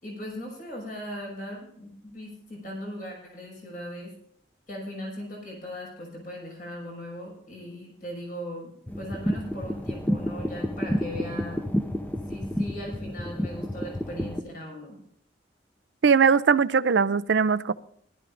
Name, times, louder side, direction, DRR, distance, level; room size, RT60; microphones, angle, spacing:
voice 1, 0.0-4.1 4.7-11.6 12.3-15.0, equal, 50° left, 5.5 m, -38 dB
sound 1, 8.9-14.4, equal, 10° left, 0.7 m, -30 dB
voice 2, 16.0-17.7, right 6 dB, 80° right, 0.5 m, -20 dB
20.0 x 13.0 x 2.6 m
head